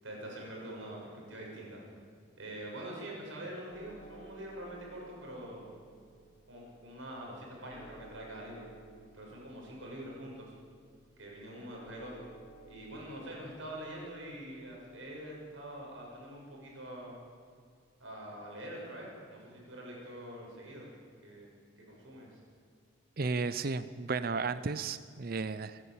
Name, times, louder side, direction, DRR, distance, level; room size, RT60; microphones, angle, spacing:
voice 1, 0.0-1.8 2.4-5.7 6.5-8.6 9.1-10.5 11.2-12.2 12.7-17.2 18.0-20.9 21.2-22.4, right 1 dB, 70° right, -2 dB, 7.0 m, -45 dB
sound 1, 3.7-17.9, right 2 dB, 30° left, 4.4 m, -58 dB
voice 2, 23.2-25.8, right 4 dB, 45° right, 13 dB, 0.5 m, -34 dB
27.0 x 11.0 x 8.7 m, 2.2 s
head